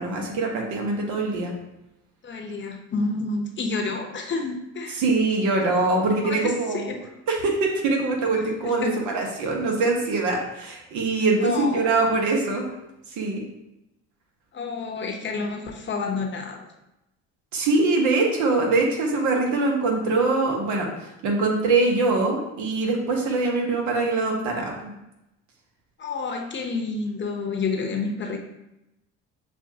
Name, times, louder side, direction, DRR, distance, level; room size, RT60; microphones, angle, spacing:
voice 1, 0.0-1.5 5.0-6.9 7.3-12.7 13.1-13.4 17.5-24.9, right 3 dB, 70° right, 0 dB, 1.2 m, -23 dB
voice 2, 2.2-5.0 6.2-7.0 8.3-9.0 11.4-12.0 14.5-16.7 26.0-28.4, left 4 dB, 40° left, 2 dB, 0.9 m, -29 dB
6.6 x 2.5 x 2.8 m, 0.89 s
supercardioid pair, 75°, 30 cm